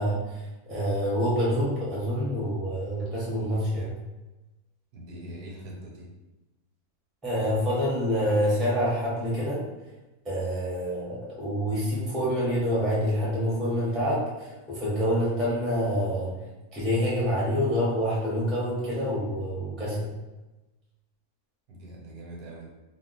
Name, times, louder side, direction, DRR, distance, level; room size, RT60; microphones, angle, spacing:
voice 1, 0.0-4.0 7.2-9.6 10.2-16.4 16.7-20.1, equal, ahead, -7 dB, 0.6 m, -27 dB
voice 2, 4.9-6.1 21.7-22.7, right 1 dB, 70° right, -2 dB, 1.2 m, -42 dB
2.8 x 2.1 x 3.9 m, 1.1 s
omnidirectional pair, 1.7 m